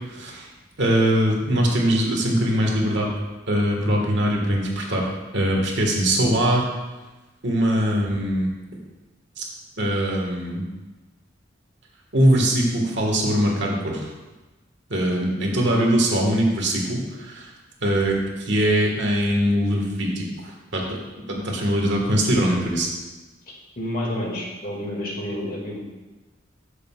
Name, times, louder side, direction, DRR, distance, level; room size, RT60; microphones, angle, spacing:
voice 1, 0.1-0.5 0.8-3.1 3.5-5.0 5.3-6.7 7.4-8.5 9.4-9.5 9.8-10.6 12.1-14.1 14.9-17.5 17.8-20.3 20.7-21.0 21.3-22.9, right 1 dB, 65° right, -1 dB, 1.7 m, -21 dB
voice 2, 23.8-25.8, left 1 dB, 50° left, -3 dB, 2.2 m, -29 dB
13.0 x 6.6 x 2.4 m, 1.1 s
head